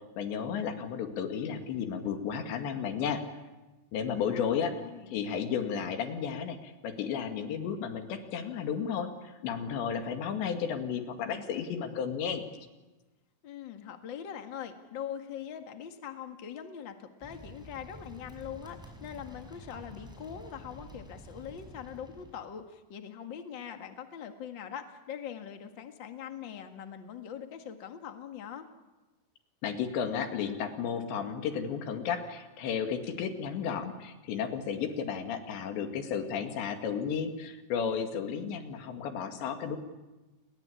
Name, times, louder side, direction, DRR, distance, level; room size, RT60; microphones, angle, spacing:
voice 1, 0.2-3.2 3.9-4.8 5.1-12.4 29.6-39.8, left 7 dB, 90° left, 6 dB, 4.4 m, -33 dB
voice 2, 4.0-5.1 13.4-28.7, left 8 dB, 45° left, 6 dB, 1.6 m, -42 dB
sound 1, 17.2-22.5, equal, ahead, 5.6 m, -49 dB
29.5 x 21.0 x 8.6 m, 1.1 s
omnidirectional pair, 4.9 m